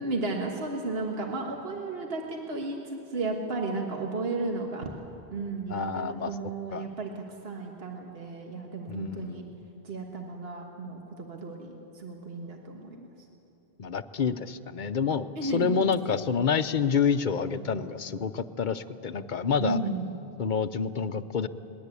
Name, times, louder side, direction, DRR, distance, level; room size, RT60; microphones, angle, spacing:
voice 1, 0.0-4.9 5.3-9.4 9.8-13.0 15.4-15.9 19.6-20.1, right 3 dB, 70° right, 1 dB, 1.8 m, -34 dB
voice 2, 5.7-6.3 6.7-6.9 8.9-9.5 13.8-19.8 20.4-21.5, left 6 dB, 50° left, 12 dB, 0.8 m, -28 dB
21.5 x 20.0 x 8.3 m, 2.8 s
omnidirectional pair, 1.1 m